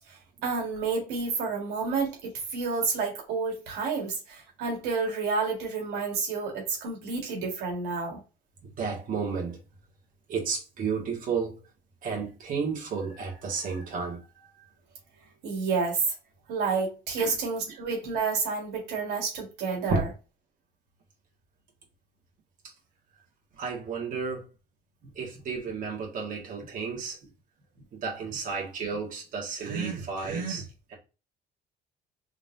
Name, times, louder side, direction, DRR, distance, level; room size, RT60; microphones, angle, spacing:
voice 1, 0.1-8.2 15.4-16.1 16.5-20.1, right 4 dB, 90° right, 1.8 m, -30 dB
voice 2, 8.8-9.6 10.3-11.5 12.0-14.4 17.2-17.3 19.9-20.0 23.6-24.5 25.2-27.2 27.9-30.9, right 5 dB, 55° right, 1.8 m, -32 dB
3.8 x 3.7 x 2.7 m
cardioid pair, 110°, 17 cm